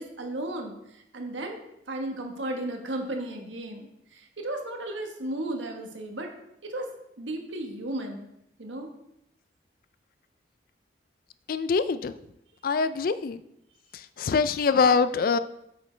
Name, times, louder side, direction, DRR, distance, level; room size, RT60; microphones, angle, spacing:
voice 1, 0.0-1.6 1.9-6.3 6.6-6.9 7.2-8.3 8.6-8.9, right 1 dB, 85° right, 3 dB, 1.4 m, -34 dB
voice 2, 11.5-12.1 12.6-13.4 13.9-15.4, left 5 dB, 50° left, 13 dB, 0.4 m, -24 dB
8.4 x 7.3 x 3.3 m, 0.80 s
head